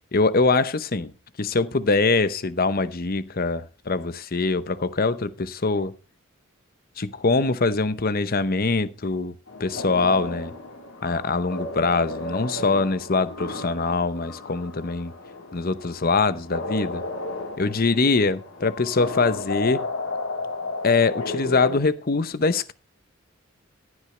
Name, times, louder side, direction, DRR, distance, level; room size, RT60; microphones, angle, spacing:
voice 1, 0.1-1.1 1.4-5.9 7.0-9.3 9.6-10.5 11.0-15.1 15.5-17.0 17.6-19.9 20.8-22.7, left 3 dB, 45° left, 0.8 m, -23 dB
sound 1, 9.5-21.8, left 2 dB, 70° left, 4.0 m, -33 dB
15.0 x 9.7 x 3.3 m
head